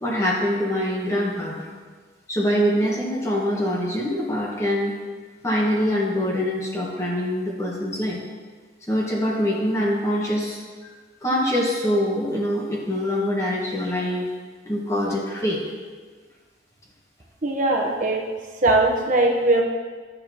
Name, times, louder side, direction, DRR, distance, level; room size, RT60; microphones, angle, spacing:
voice 1, 0.0-1.7 2.3-4.9 5.4-8.2 8.9-10.6 11.2-14.3 14.6-15.6, equal, 15° left, -3 dB, 1.6 m, -24 dB
voice 2, 17.4-18.2 18.6-19.6, right 2 dB, 50° right, -1 dB, 1.1 m, -20 dB
13.5 x 6.8 x 3.0 m, 1.5 s
head